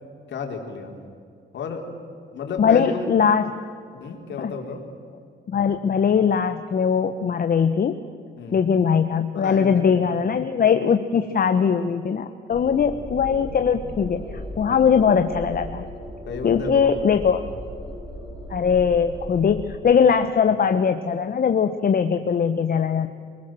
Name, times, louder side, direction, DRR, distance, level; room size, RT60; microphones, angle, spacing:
voice 1, 0.3-0.9 1.5-1.9 2.3-3.1 3.9-4.8 8.4-8.7 9.3-10.4 12.8-13.3 16.3-17.2, left 5 dB, 65° left, 2 dB, 4.3 m, -33 dB
voice 2, 2.6-3.6 4.4-4.5 5.5-8.0 8.5-15.8 16.4-17.4 18.5-23.1, left 7 dB, 50° left, 8 dB, 1.1 m, -20 dB
sound 1, 12.5-19.7, equal, 20° right, 7.9 m, -37 dB
26.5 x 20.0 x 7.7 m, 2.4 s
cardioid pair, 90°, 20 cm